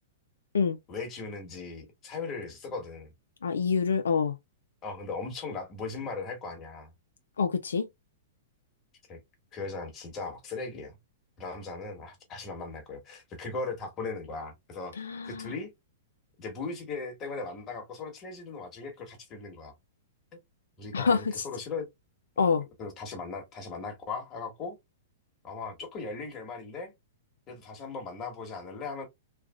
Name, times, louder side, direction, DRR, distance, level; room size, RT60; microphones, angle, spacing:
voice 1, 0.9-3.1 4.8-6.9 9.1-9.2 9.5-11.0 11.4-14.9 15.2-15.7 16.4-19.7 20.8-21.9 22.8-24.8 25.4-26.9 27.5-29.1, left 4 dB, 30° left, 1.3 m, -38 dB
voice 2, 3.4-4.3 7.4-7.9 14.9-15.5 20.9-21.4 22.4-22.6, left 5 dB, 85° left, 0.3 m, -26 dB
3.2 x 2.3 x 2.3 m
hypercardioid pair, 120°, 0 cm